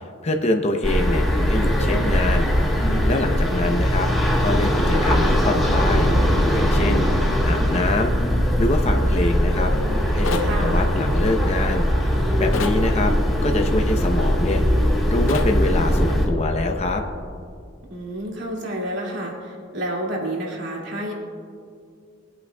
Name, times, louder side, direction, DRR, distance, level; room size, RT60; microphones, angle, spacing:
voice 1, 0.0-2.5 3.1-4.1 4.4-6.1 6.5-7.1 7.4-9.7 10.1-11.9 12.4-13.1 13.4-14.6 15.1-17.0, left 2 dB, 35° left, 3 dB, 0.8 m, -25 dB
sound 1, 0.8-16.3, equal, ahead, 2.0 m, -20 dB
sound 2, 10.2-10.6 12.5-12.8 15.3-15.6, left 4 dB, 85° left, 0.7 m, -27 dB
voice 2, 10.4-10.9 17.9-21.1, right 1 dB, 65° right, -2 dB, 2.4 m, -29 dB
22.0 x 8.5 x 2.3 m, 2.3 s
head